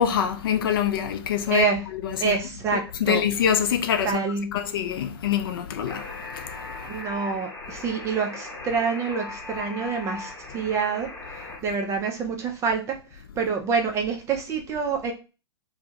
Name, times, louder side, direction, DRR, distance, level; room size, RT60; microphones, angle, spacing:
voice 1, 0.0-1.6 1.9-2.4 3.0-4.2 4.5-6.1 6.3-6.5, left 8 dB, 55° left, 0.5 m, -24 dB
voice 2, 1.5-1.9 2.2-3.2 4.0-4.5 6.9-11.1 11.6-13.0 13.4-15.1, right 5 dB, 20° right, 0.4 m, -27 dB
Alarm, 5.8-11.6, left 2 dB, 15° left, 0.8 m, -38 dB
2.1 x 2.1 x 2.8 m
figure-of-eight pair, 105°, 14 cm